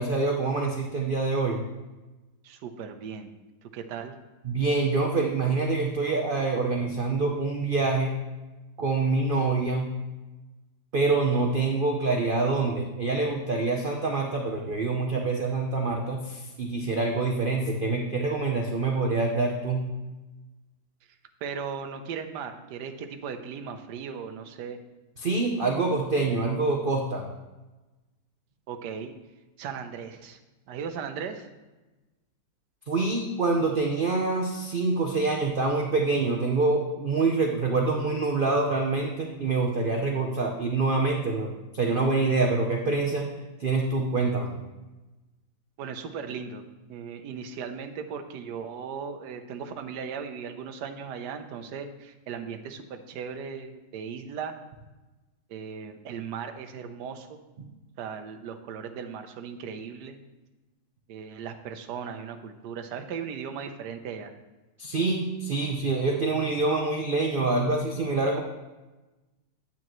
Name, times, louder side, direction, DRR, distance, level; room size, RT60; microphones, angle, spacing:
voice 1, 0.0-1.6 4.4-8.1 8.8-9.9 10.9-19.9 25.2-27.3 32.9-43.3 43.6-44.5 64.8-68.4, right 3 dB, 85° right, 1 dB, 0.4 m, -26 dB
voice 2, 2.4-3.3 3.7-4.1 21.4-24.8 28.7-29.2 29.6-30.4 30.7-31.5 45.8-46.6 46.9-54.5 55.5-57.4 58.0-60.2 61.1-64.3, right 6 dB, 70° right, 7 dB, 1.2 m, -37 dB
8.9 x 8.5 x 3.0 m, 1.1 s
omnidirectional pair, 2.0 m